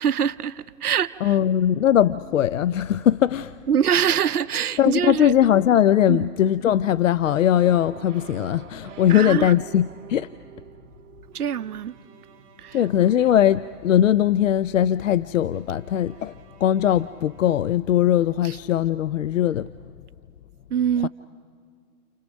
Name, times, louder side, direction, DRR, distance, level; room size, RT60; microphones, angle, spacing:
voice 1, 0.0-1.4 3.7-5.3 6.1-6.3 9.1-9.5 11.3-11.9 12.6-12.8 18.4-18.6 20.7-21.1, right 8 dB, 70° right, 0.9 m, -24 dB
voice 2, 1.2-3.6 4.8-10.3 12.7-19.7 21.0-21.1, left 11 dB, 55° left, 0.5 m, -20 dB
sound 1, 7.5-14.5, right 9 dB, 50° right, 1.4 m, -45 dB
Bowed string instrument, 11.3-14.5 15.5-18.4, right 2 dB, 30° right, 2.4 m, -56 dB
29.5 x 28.5 x 5.2 m
hypercardioid pair, 135°, 47 cm